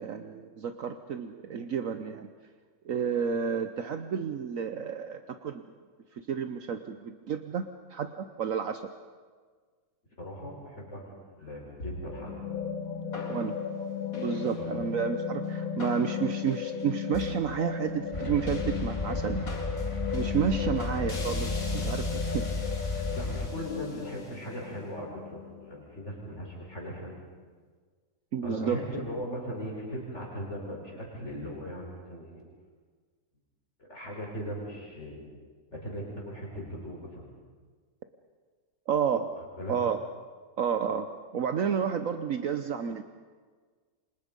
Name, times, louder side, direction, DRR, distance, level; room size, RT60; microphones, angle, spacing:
voice 1, 0.0-2.3 2.8-5.6 6.3-8.8 13.3-13.6 14.2-19.5 20.1-22.4 28.3-28.8 38.9-39.4 39.7-40.0 40.6-43.0, right 7 dB, 65° right, 8 dB, 1.3 m, -31 dB
voice 2, 10.2-12.4 14.6-14.7 23.1-27.2 28.4-32.4 33.8-35.2 35.7-37.3 39.4-39.7, equal, 50° left, -2 dB, 5.2 m, -39 dB
sound 1, 11.8-26.2, left 6 dB, 65° left, 3.0 m, -35 dB
sound 2, 18.1-23.5, left 3 dB, 20° left, 2.6 m, -33 dB
28.5 x 25.5 x 5.4 m, 1.5 s
omnidirectional pair, 1.6 m